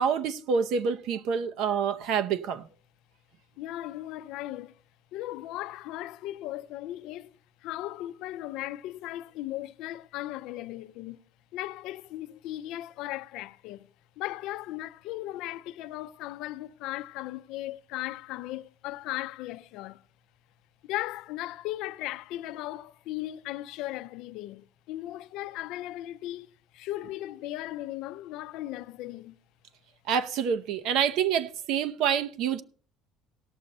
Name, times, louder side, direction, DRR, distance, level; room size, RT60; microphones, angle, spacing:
voice 1, 0.0-2.7 30.1-32.6, right 7 dB, 65° right, 0.8 m, -27 dB
voice 2, 3.6-4.7 5.1-11.2 11.5-13.9 14.2-20.0 20.8-29.4, left 15 dB, 70° left, 0.5 m, -37 dB
17.5 x 6.6 x 4.1 m
cardioid pair, 135°, 0 cm